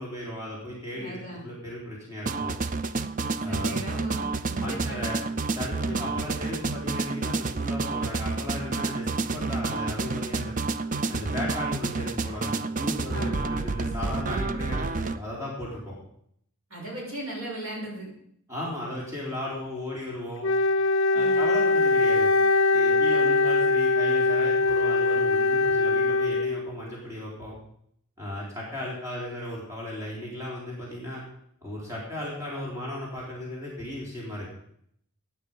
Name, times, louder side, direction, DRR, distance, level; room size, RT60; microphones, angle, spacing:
voice 1, 0.0-2.6 3.4-3.9 4.6-5.2 5.5-10.5 11.1-16.0 18.5-20.5 21.1-22.3 22.7-27.6 28.2-31.2 31.6-34.5, left 1 dB, 15° right, -5 dB, 3.8 m, -36 dB
voice 2, 0.9-1.4 3.5-5.0 5.8-6.1 13.1-13.5 16.7-18.1 21.1-21.6, right 1 dB, 70° right, -3 dB, 6.7 m, -38 dB
sound 1, 2.3-15.2, right 3 dB, 35° right, 0.5 m, -29 dB
Wind instrument woodwind instrument, 20.4-26.8, left 3 dB, 60° left, 0.6 m, -22 dB
15.5 x 9.6 x 5.4 m, 0.69 s
head